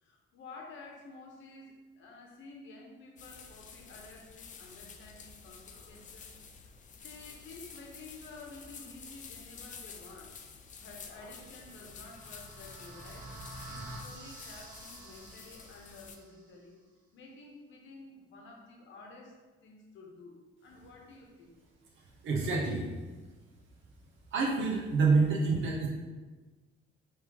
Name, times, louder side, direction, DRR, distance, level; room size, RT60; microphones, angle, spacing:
voice 1, 0.0-6.3 6.6-10.4 10.8-13.3 13.6-16.8 17.1-21.5, left 3 dB, 70° left, 0 dB, 0.8 m, -51 dB
sound 1, 3.2-16.2, left 5 dB, 40° left, 0.4 m, -50 dB
sound 2, 11.4-16.4, right 1 dB, 40° right, 0.9 m, -48 dB
voice 2, 22.2-23.2 24.3-25.9, right 4 dB, 70° right, -2 dB, 0.8 m, -27 dB
3.6 x 3.2 x 2.9 m, 1.2 s
cardioid pair, 115°, 21 cm